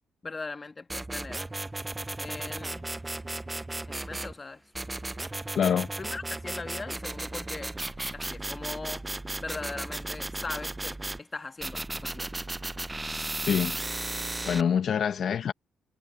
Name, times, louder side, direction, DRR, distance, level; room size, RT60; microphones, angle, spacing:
voice 1, 0.2-1.5 2.2-2.9 3.9-4.6 6.0-7.7 8.1-9.0 9.4-12.4, left 3 dB, 25° left, 1.7 m, -40 dB
sound 1, 0.9-4.3 4.7-11.2 11.6-14.6, right 2 dB, 15° right, 0.4 m, -35 dB
voice 2, 5.5-5.9 13.4-13.8 14.4-15.5, left 8 dB, 60° left, 0.8 m, -25 dB
cardioid pair, 90°, 0 cm